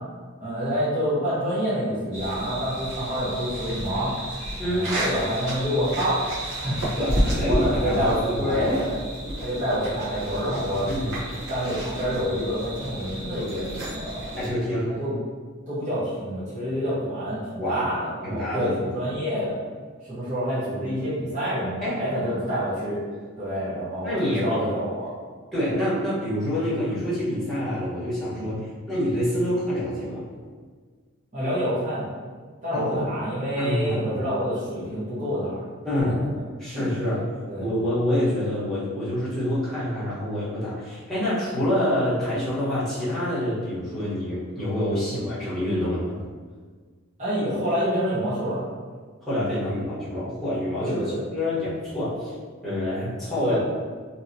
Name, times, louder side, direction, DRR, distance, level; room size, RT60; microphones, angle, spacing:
voice 1, 0.4-4.1 4.6-6.2 6.5-9.0 9.4-10.9 11.5-14.3 15.0-15.1 15.7-19.6 20.0-23.0 23.4-25.1 28.3-28.5 31.3-32.1 32.6-35.6 35.9-36.1 36.7-37.1 37.5-37.9 45.1-45.2 47.2-48.6 50.8-51.2 53.4-53.6, equal, 35° right, -11 dB, 1.0 m, -27 dB
sound 1, 2.1-14.5, right 1 dB, 60° right, 1.0 m, -31 dB
voice 2, 4.6-4.9 7.0-8.7 10.9-11.2 14.4-15.0 17.6-17.9 18.2-18.7 21.8-22.0 24.0-24.6 25.5-30.3 32.7-33.0 33.6-34.2 35.8-36.2 36.6-37.3 37.6-46.2 49.2-52.3 52.6-53.6, left 1 dB, ahead, -12 dB, 1.0 m, -27 dB
2.8 x 2.8 x 2.6 m, 1.5 s
head